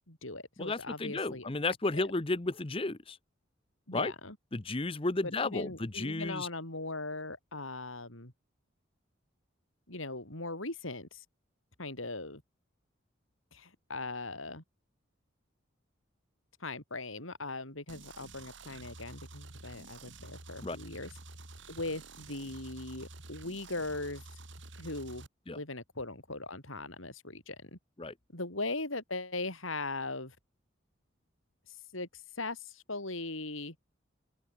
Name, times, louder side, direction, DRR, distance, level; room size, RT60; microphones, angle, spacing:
voice 1, 0.0-1.5 1.9-2.0 3.9-4.4 5.2-8.3 9.9-11.2 11.8-12.4 13.5-14.6 16.6-21.1 21.7-24.2 24.8-25.3 25.5-27.8 28.3-30.4 31.7-33.8, left 2 dB, 80° left, 7.1 m, -39 dB
voice 2, 0.6-3.2 3.9-4.1 4.5-6.5 20.6-20.8 25.5-25.6 28.0-28.1, left 2 dB, 25° left, 0.8 m, -33 dB
sound 1, 17.9-25.3, right 2 dB, 65° right, 4.8 m, -50 dB
open air
head